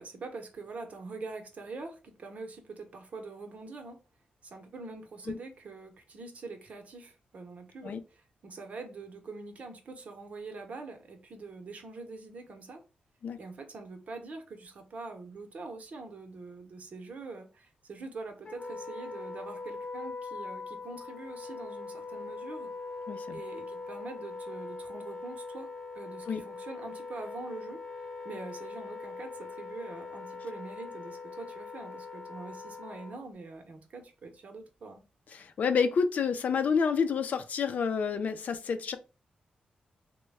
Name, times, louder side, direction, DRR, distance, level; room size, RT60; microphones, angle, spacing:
voice 1, 0.0-4.0 4.4-12.8 13.4-22.7 23.3-25.7 25.9-35.0, right 3 dB, 55° right, 0.8 m, -44 dB
Wind instrument woodwind instrument, 18.4-33.3, left 3 dB, 45° left, 0.9 m, -42 dB
voice 2, 35.3-39.0, left 6 dB, 65° left, 0.5 m, -29 dB
3.1 x 2.2 x 3.4 m
cardioid pair, 95°, 3 cm